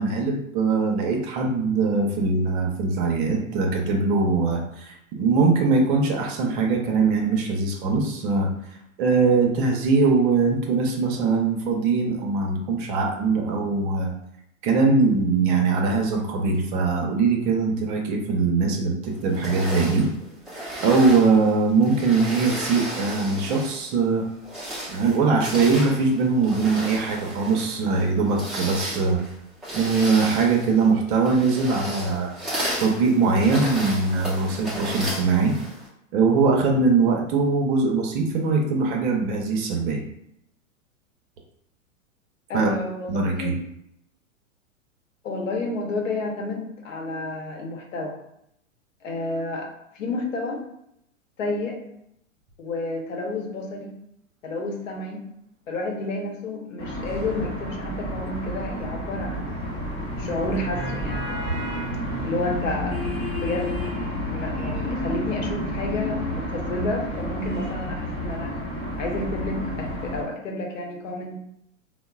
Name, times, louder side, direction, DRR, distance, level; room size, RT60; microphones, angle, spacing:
voice 1, 0.0-8.5 9.0-14.1 14.6-20.1 20.8-24.3 24.9-29.2 29.7-32.3 32.8-35.6 36.1-40.0 42.5-42.7 43.1-43.6, right 4 dB, 40° right, 1 dB, 0.6 m, -21 dB
sound 1, 19.3-23.9 24.3-35.9, equal, ahead, 0.3 m, -34 dB
voice 2, 42.5-43.6 45.2-48.2 49.0-49.7 49.9-50.6 51.4-51.8 52.6-53.9 54.4-55.3 55.7-59.6 60.2-61.3 62.2-63.8 64.3-68.5 69.0-71.4, left 2 dB, 70° left, 1 dB, 0.8 m, -30 dB
sound 2, 56.8-70.2, equal, 25° left, 1.0 m, -30 dB
3.7 x 2.0 x 2.3 m, 0.77 s
hypercardioid pair, 115°, 40 cm